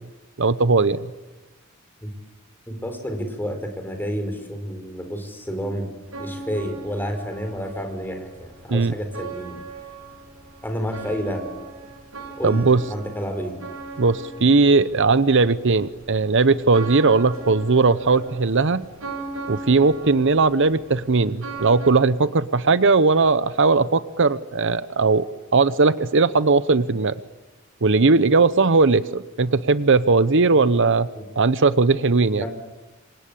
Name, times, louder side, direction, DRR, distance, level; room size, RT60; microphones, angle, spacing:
voice 1, 0.4-1.1 8.7-8.9 12.4-12.8 14.0-18.8 19.5-25.3 25.5-27.1 27.8-31.1 31.4-32.5, right 3 dB, 60° right, 14 dB, 0.9 m, -18 dB
voice 2, 2.7-5.9 6.2-9.6 10.6-11.5 12.4-13.6 31.1-31.2 32.3-32.5, equal, 10° left, 5 dB, 4.8 m, -30 dB
sound 1, 6.0-21.9, right 3 dB, 90° right, 7.2 m, -39 dB
27.5 x 24.5 x 8.6 m, 1.1 s
head